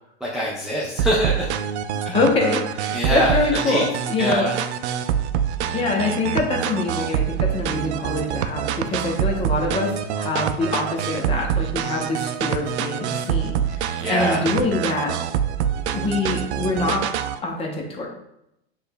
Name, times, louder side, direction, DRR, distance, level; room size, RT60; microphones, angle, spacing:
voice 1, 0.2-1.5 2.1-2.2 2.9-3.4 3.7-3.8 4.2-4.6 14.0-14.5, equal, ahead, -6 dB, 0.3 m, -23 dB
sound 1, 1.0-17.4, right 9 dB, 85° right, 0.5 m, -26 dB
voice 2, 2.1-4.5 5.7-15.1 15.9-18.1, left 3 dB, 20° left, 1 dB, 0.7 m, -25 dB
6.5 x 3.2 x 2.2 m, 0.81 s
hypercardioid pair, 135°, 33 cm